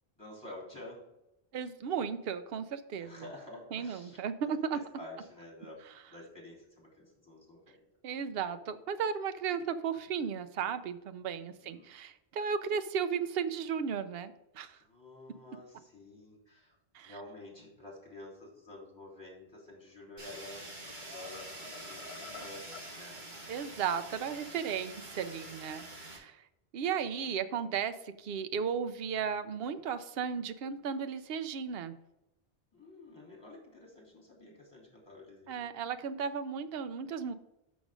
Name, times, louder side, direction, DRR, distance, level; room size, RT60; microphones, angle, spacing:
voice 1, 0.2-1.1 3.0-7.8 11.4-11.9 14.8-16.8 17.0-21.5 21.8-23.2 32.7-35.7, left 2 dB, 25° left, -2 dB, 3.0 m, -50 dB
voice 2, 1.5-3.1 3.7-4.8 8.0-14.8 16.9-17.1 23.5-26.4 26.7-32.0 35.5-37.3, right 7 dB, 70° right, 11 dB, 0.8 m, -35 dB
sound 1, 20.0-20.5 20.8-23.0, left 5 dB, 80° left, 1.0 m, -50 dB
Fire, 20.2-26.2, right 1 dB, 50° right, 2.4 m, -46 dB
6.1 x 6.1 x 4.9 m, 0.93 s
omnidirectional pair, 1.0 m